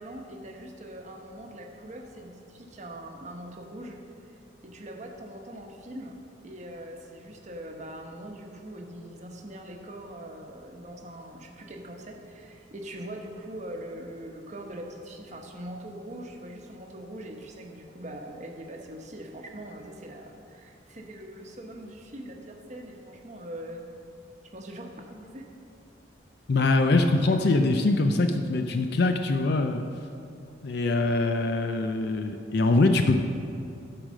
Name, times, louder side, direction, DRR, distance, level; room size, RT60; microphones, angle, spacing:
voice 1, 0.0-4.3 4.6-6.2 6.4-23.9 24.5-25.5, right 1 dB, 40° right, 2 dB, 1.0 m, -42 dB
voice 2, 26.5-29.8 30.6-33.2, left 2 dB, 55° left, 6 dB, 0.5 m, -23 dB
11.0 x 4.8 x 6.3 m, 2.5 s
head